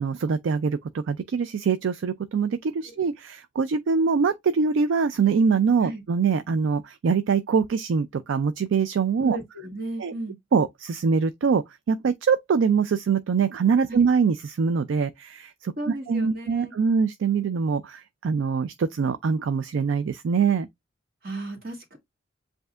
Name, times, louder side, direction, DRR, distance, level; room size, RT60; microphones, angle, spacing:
voice 1, 0.0-9.4 10.0-10.1 10.5-20.7, right 5 dB, 65° right, 0.4 m, -24 dB
voice 2, 9.2-10.3 13.9-14.0 15.8-16.7 21.2-22.0, right 2 dB, 50° right, 1.7 m, -35 dB
7.7 x 2.6 x 2.3 m
head